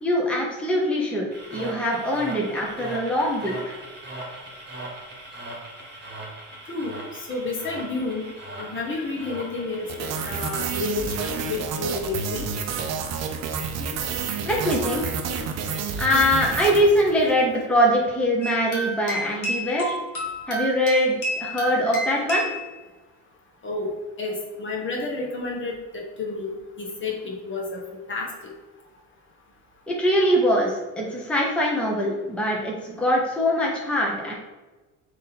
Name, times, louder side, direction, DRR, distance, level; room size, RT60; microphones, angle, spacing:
voice 1, 0.0-3.5 13.8-15.2 16.0-19.9 20.5-22.4 29.9-34.3, equal, 5° left, -2 dB, 0.8 m, -23 dB
sound 1, 1.3-15.5, right 1 dB, 30° right, 1.2 m, -41 dB
voice 2, 6.7-8.3 8.6-12.5 23.6-23.9 24.2-26.5 26.8-27.8 28.1-28.3, left 3 dB, 35° left, -1 dB, 1.1 m, -30 dB
sound 2, 9.9-17.5, right 6 dB, 55° right, 0.6 m, -29 dB
sound 3, 18.4-22.6, equal, 70° left, 1.4 m, -30 dB
3.6 x 2.7 x 4.1 m, 1.2 s
cardioid pair, 95°, 32 cm